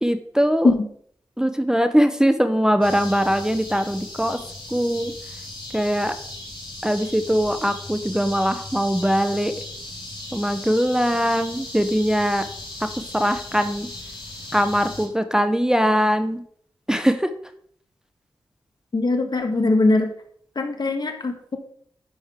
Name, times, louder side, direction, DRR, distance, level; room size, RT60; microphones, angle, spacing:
voice 1, 0.0-0.7 1.4-4.4 4.7-5.1 5.7-6.1 6.8-9.5 10.3-12.5 13.1-13.9 14.5-16.4 16.9-17.3, equal, 5° right, 9 dB, 0.7 m, -21 dB
sound 1, 2.8-15.1, left 2 dB, 70° left, 4.0 m, -37 dB
voice 2, 18.9-20.1 20.5-21.6, left 2 dB, 55° left, 5 dB, 1.5 m, -21 dB
10.0 x 6.2 x 3.6 m, 0.62 s
cardioid pair, 50°, 9 cm